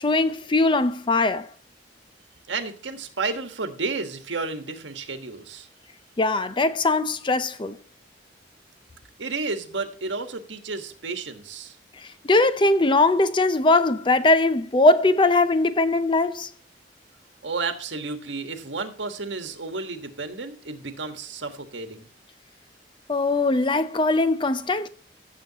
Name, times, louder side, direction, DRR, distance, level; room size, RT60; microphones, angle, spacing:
voice 1, 0.0-1.5 6.2-7.8 12.2-16.5 23.1-24.9, left 2 dB, 25° left, 0.5 m, -20 dB
voice 2, 2.5-5.7 9.2-11.8 17.4-22.1, right 4 dB, 85° right, 1.4 m, -32 dB
15.5 x 7.0 x 2.9 m
head